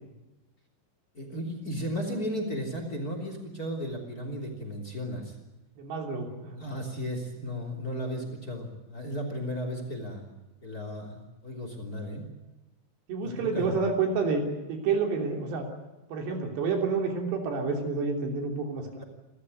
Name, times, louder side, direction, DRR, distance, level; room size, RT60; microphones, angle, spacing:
voice 1, 1.1-5.3 6.6-10.3 10.6-12.3 13.2-13.7 19.0-19.1, equal, 25° left, 4 dB, 3.3 m, -35 dB
voice 2, 5.8-6.6 13.1-14.4 14.7-15.7 16.1-19.0, right 4 dB, 85° right, 3 dB, 5.4 m, -29 dB
29.0 x 13.5 x 9.6 m, 1.1 s
omnidirectional pair, 4.8 m